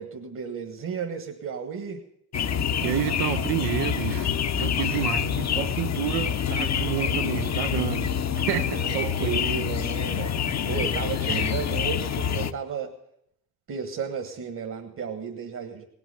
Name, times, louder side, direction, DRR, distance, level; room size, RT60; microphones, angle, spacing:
voice 1, 0.0-2.0 8.7-10.3 10.7-12.9 13.7-15.8, right 6 dB, 50° right, 1.6 m, -33 dB
sound 1, 2.3-12.5, left 8 dB, 45° left, 0.7 m, -26 dB
voice 2, 2.8-4.3 4.6-8.1 8.5-9.5 11.3-11.5, right 14 dB, 75° right, 0.6 m, -30 dB
18.0 x 6.2 x 9.1 m
hypercardioid pair, 50°, 39 cm